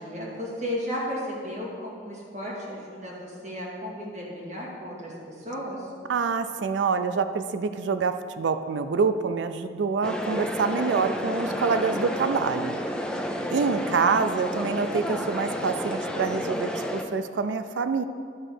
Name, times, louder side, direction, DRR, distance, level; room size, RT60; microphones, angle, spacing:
voice 1, 0.0-5.9, equal, 40° right, -5 dB, 2.1 m, -34 dB
voice 2, 6.1-12.8 13.5-18.0, right 5 dB, 75° right, 10 dB, 0.4 m, -26 dB
sound 1, 10.0-17.0, left 1 dB, 5° left, 0.4 m, -30 dB
11.0 x 3.9 x 6.4 m, 2.2 s
head